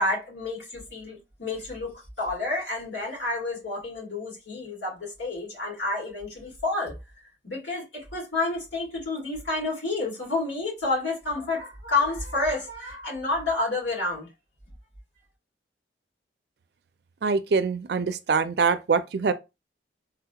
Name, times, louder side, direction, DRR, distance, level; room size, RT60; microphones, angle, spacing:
voice 1, 0.0-6.9 7.4-14.3, left 2 dB, 85° left, 2.0 m, -29 dB
voice 2, 17.2-19.3, right 5 dB, 65° right, 0.4 m, -24 dB
3.8 x 2.3 x 2.8 m
head